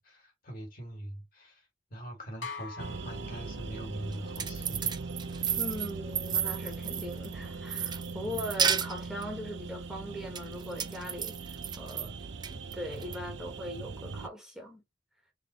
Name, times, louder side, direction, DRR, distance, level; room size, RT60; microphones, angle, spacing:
voice 1, 0.0-4.9 5.3-5.5 8.2-8.5 11.9-12.2, right 1 dB, 50° left, 2.2 m, -43 dB
sound 1, 2.4-4.2, left 4 dB, 85° left, 0.9 m, -44 dB
sound 2, 2.8-14.3, right 4 dB, 70° right, 0.5 m, -40 dB
sound 3, 4.1-7.3 7.7-9.2 10.4-12.1 12.4-13.2, right 7 dB, 25° right, 0.4 m, -32 dB
voice 2, 5.6-12.1 12.5-14.8, equal, 5° right, 1.4 m, -40 dB
4.0 x 3.3 x 2.9 m
head